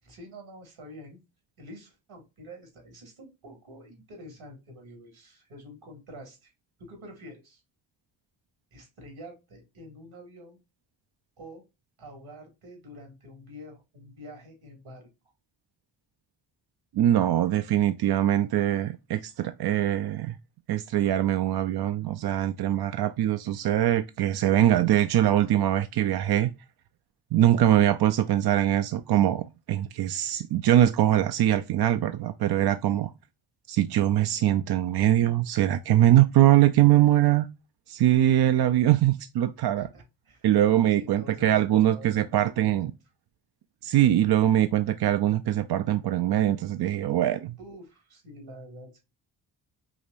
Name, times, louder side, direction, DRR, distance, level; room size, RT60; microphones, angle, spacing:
voice 1, 0.0-1.2 1.6-6.5 6.8-7.6 8.7-10.6 11.4-11.6 12.0-15.1 39.8-40.5 40.9-42.9 47.6-49.0, equal, 70° right, 2.2 m, -47 dB
voice 2, 16.9-20.4 20.7-26.5 27.3-33.1 33.7-37.5 37.9-39.9 40.4-42.9 43.8-47.6, right 12 dB, 50° right, 0.5 m, -22 dB
5.0 x 2.8 x 2.5 m
supercardioid pair, 40°, 49 cm